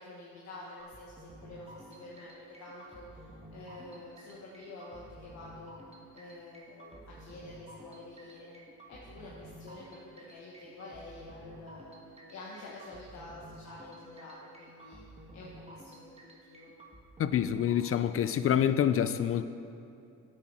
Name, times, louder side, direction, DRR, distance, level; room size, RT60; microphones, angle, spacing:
voice 1, 0.0-5.8 6.1-8.5 8.9-15.0 15.3-16.7, left 2 dB, 65° left, -4 dB, 1.3 m, -48 dB
sound 1, 0.8-18.9, right 1 dB, 20° right, 1.5 m, -52 dB
voice 2, 17.2-19.5, left 9 dB, 50° left, 12 dB, 0.4 m, -27 dB
8.6 x 7.5 x 4.9 m, 2.6 s
cardioid pair, 90°, 30 cm